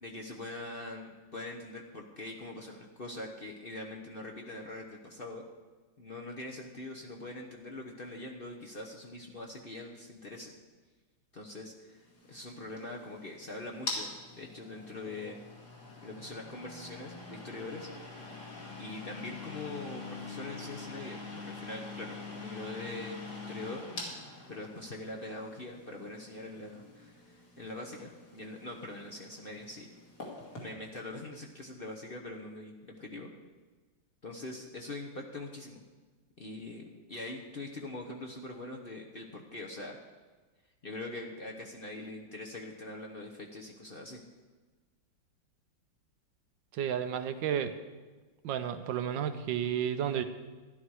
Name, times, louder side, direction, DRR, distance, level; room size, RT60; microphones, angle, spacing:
voice 1, 0.0-5.4 6.0-10.5 11.3-12.0 12.3-15.4 16.0-17.9 18.8-23.8 24.5-29.9 30.6-33.3 34.2-35.8 36.4-40.0 40.8-44.2, left 2 dB, 40° left, 0 dB, 0.9 m, -43 dB
sound 1, 12.0-30.7, left 3 dB, 55° left, 2.9 m, -45 dB
voice 2, 46.7-47.7 48.4-50.2, right 9 dB, 80° right, 9 dB, 1.4 m, -32 dB
12.5 x 11.5 x 4.8 m, 1.3 s
omnidirectional pair, 2.1 m